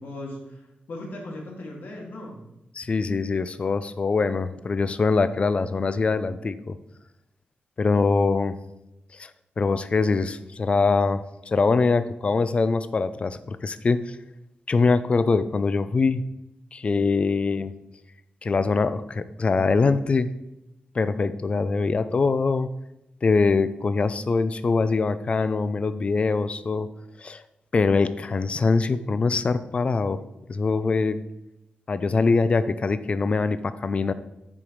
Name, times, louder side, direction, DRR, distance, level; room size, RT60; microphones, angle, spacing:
voice 1, 0.0-2.5, left 1 dB, 75° left, -1 dB, 2.2 m, -38 dB
voice 2, 2.8-6.8 7.8-8.5 9.2-9.3 9.6-14.2 14.7-16.2 16.7-17.7 18.4-20.3 20.9-22.7 23.2-26.9 27.2-27.4 27.7-30.2 30.5-31.2 31.9-34.1, left 4 dB, 35° left, 13 dB, 0.4 m, -23 dB
7.0 x 4.7 x 5.1 m, 0.89 s
wide cardioid pair, 160°, 3 cm